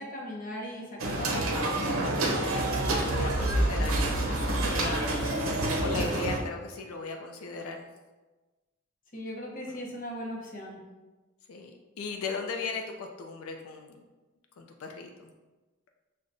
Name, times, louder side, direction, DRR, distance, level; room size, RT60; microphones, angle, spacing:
voice 1, 0.0-1.8 3.4-3.7 5.9-6.3 9.1-10.8, equal, 40° left, -2 dB, 0.7 m, -39 dB
sound 1, 1.0-6.4, right 1 dB, 85° right, 0.6 m, -28 dB
voice 2, 2.0-2.7 3.0-5.5 5.8-7.9 9.7-9.8 11.5-14.0 14.6-15.3, left 3 dB, 90° left, 3 dB, 0.4 m, -37 dB
6.2 x 2.2 x 2.5 m, 1.2 s
head